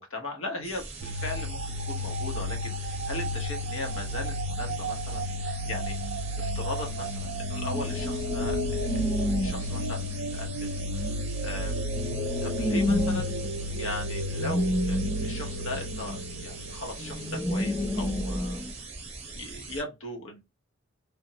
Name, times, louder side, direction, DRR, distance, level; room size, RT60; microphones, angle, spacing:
voice 1, 0.0-1.6 1.9-6.0 6.4-11.1 11.4-11.8 12.4-13.4 13.8-18.7 19.3-20.4, left 1 dB, 70° left, 0.9 m, -38 dB
sound 1, 0.6-19.8, right 3 dB, 30° right, 0.8 m, -42 dB
sound 2, 1.0-17.4, equal, 70° right, 0.3 m, -33 dB
sound 3, 7.7-18.7, left 1 dB, 5° left, 0.4 m, -31 dB
3.3 x 2.0 x 2.7 m
head